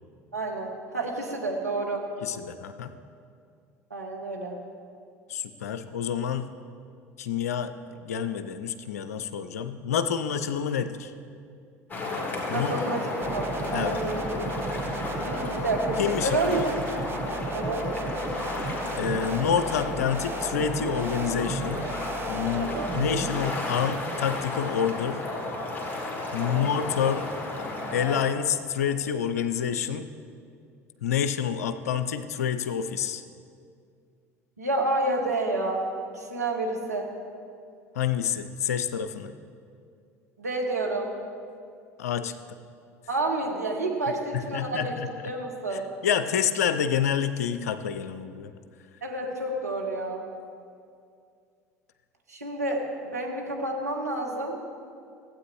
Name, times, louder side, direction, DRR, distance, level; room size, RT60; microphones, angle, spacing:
voice 1, 0.3-2.1 3.9-4.6 12.5-14.3 15.2-16.7 17.5-17.9 22.6-22.9 26.4-26.7 34.6-35.8 36.1-37.1 40.4-41.1 43.1-45.0 45.2-45.9 49.0-50.3 52.3-54.5, right 2 dB, 85° right, 0 dB, 1.1 m, -29 dB
voice 2, 2.2-2.9 5.3-6.5 7.2-7.7 8.0-11.1 12.5-12.8 13.7-14.0 16.0-16.7 18.9-21.8 22.3-25.2 26.3-27.3 27.9-30.0 31.0-33.2 38.0-39.3 42.0-42.3 44.5-45.1 46.0-48.5, left 8 dB, 70° left, 11 dB, 0.5 m, -28 dB
sound 1, 11.9-28.2, left 2 dB, 20° left, 1.9 m, -33 dB
sound 2, 13.2-23.5, right 3 dB, 25° right, 0.7 m, -35 dB
15.0 x 8.4 x 3.2 m, 2.3 s
figure-of-eight pair, 65°, 8 cm